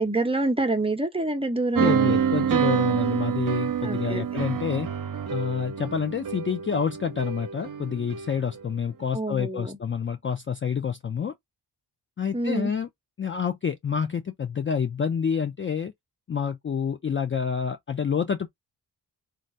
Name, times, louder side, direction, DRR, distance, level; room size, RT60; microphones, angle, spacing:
voice 1, 0.0-2.1 3.8-4.4 9.1-9.8 12.3-12.7, right 2 dB, 15° right, 0.8 m, -27 dB
sound 1, 1.7-8.7, right 8 dB, 50° right, 0.7 m, -27 dB
voice 2, 1.8-4.9 5.3-11.3 12.2-12.9 13.2-15.9 16.3-18.5, left 7 dB, 30° left, 0.4 m, -28 dB
3.2 x 2.4 x 2.5 m
cardioid pair, 75°, 43 cm